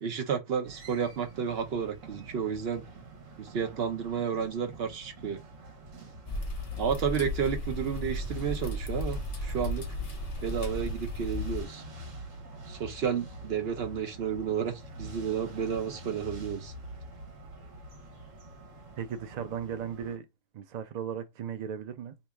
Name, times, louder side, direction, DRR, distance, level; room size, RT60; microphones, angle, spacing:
voice 1, 0.0-2.8 3.4-5.4 6.8-9.8 10.4-11.8 12.7-16.7, right 7 dB, 55° right, 0.9 m, -31 dB
sound 1, 0.6-20.2, right 1 dB, 75° right, 1.4 m, -46 dB
sound 2, 6.3-11.7, left 1 dB, 35° left, 0.7 m, -35 dB
voice 2, 19.0-20.3 20.5-22.2, right 8 dB, 90° right, 0.3 m, -36 dB
2.8 x 2.6 x 3.4 m
omnidirectional pair, 1.3 m